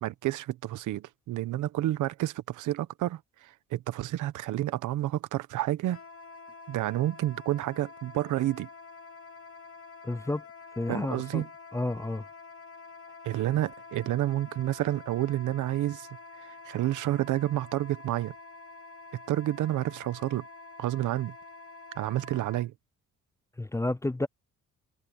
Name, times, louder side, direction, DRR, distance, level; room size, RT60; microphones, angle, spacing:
voice 1, 0.0-6.0 6.7-8.7 10.9-11.5 13.2-16.1 16.4-18.3 19.3-20.4 20.8-21.3 22.0-22.7, right 14 dB, 85° right, 1.1 m, -30 dB
Wind instrument woodwind instrument, 5.9-22.7, left 3 dB, 50° left, 2.7 m, -48 dB
voice 2, 10.0-10.4 10.8-11.4 11.7-12.2 23.6-24.3, left 2 dB, 10° left, 0.6 m, -30 dB
cardioid pair, 90°, 30 cm